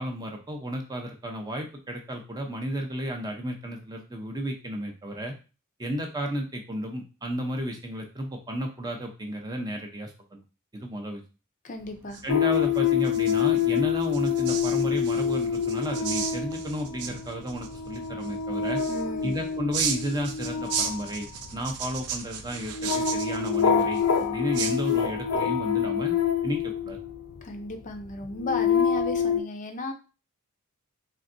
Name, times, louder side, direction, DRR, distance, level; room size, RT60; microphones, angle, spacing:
voice 1, 0.0-5.3 5.8-10.4 10.7-11.2 12.2-18.8 19.2-26.1 26.4-27.0, equal, 20° right, 2 dB, 0.6 m, -33 dB
voice 2, 11.6-12.2 18.9-19.3 27.4-29.9, left 2 dB, 35° left, 6 dB, 0.5 m, -35 dB
sound 1, 11.8-25.4, right 7 dB, 80° right, 0.5 m, -37 dB
sound 2, 12.3-27.4 28.1-29.4, left 7 dB, 85° left, 0.5 m, -26 dB
3.8 x 3.4 x 2.6 m, 0.33 s
head